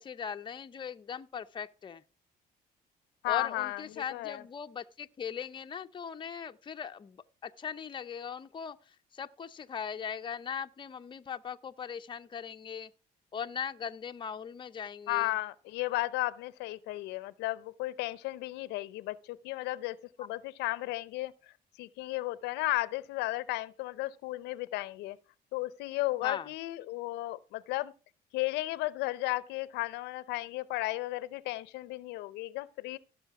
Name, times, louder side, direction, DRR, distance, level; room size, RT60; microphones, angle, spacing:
voice 1, 0.0-2.0 3.3-12.9 13.3-15.3 26.2-26.5, left 7 dB, 30° left, 0.6 m, -39 dB
voice 2, 3.2-4.5 15.1-21.3 21.8-25.2 25.5-27.9 28.3-33.0, left 18 dB, 90° left, 0.6 m, -34 dB
15.0 x 6.4 x 4.8 m
cardioid pair, 110°, 17 cm